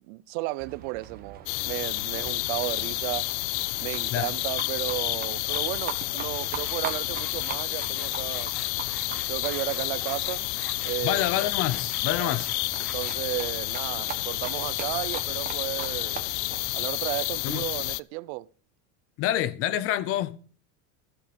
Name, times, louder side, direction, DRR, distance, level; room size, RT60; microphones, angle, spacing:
voice 1, 0.1-3.2 3.8-8.5 9.3-10.5 10.8-11.3 12.2-12.3 12.8-16.2 16.7-18.5, right 21 dB, 55° right, 0.6 m, -34 dB
Livestock farm animals working animals, 0.6-16.7, right 8 dB, 25° right, 1.5 m, -42 dB
sound 1, 1.5-18.0, left 22 dB, 65° left, 0.5 m, -30 dB
sound 2, 6.3-13.5, right 1 dB, ahead, 1.2 m, -47 dB
voice 2, 11.0-12.5 17.4-17.7 19.2-20.4, left 13 dB, 35° left, 0.9 m, -27 dB
15.5 x 7.4 x 5.2 m
cardioid pair, 175°, 38 cm